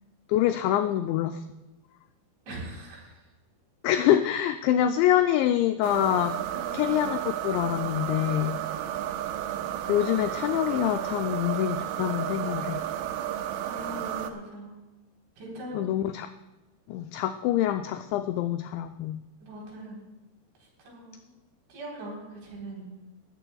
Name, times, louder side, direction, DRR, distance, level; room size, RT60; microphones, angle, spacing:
voice 1, 0.3-1.4 3.8-6.4 6.7-8.6 9.9-12.8 15.7-16.3 16.9-19.2, left 12 dB, 85° left, 8 dB, 2.5 m, -25 dB
voice 2, 2.5-3.2 6.5-6.9 13.6-14.8 15.4-15.9 19.4-20.0 20.8-21.3 21.7-22.9, right 1 dB, 65° right, -3 dB, 5.9 m, -41 dB
sound 1, 5.8-14.3, right 11 dB, 85° right, 3.2 m, -32 dB
20.5 x 13.5 x 2.3 m, 1.1 s
omnidirectional pair, 5.6 m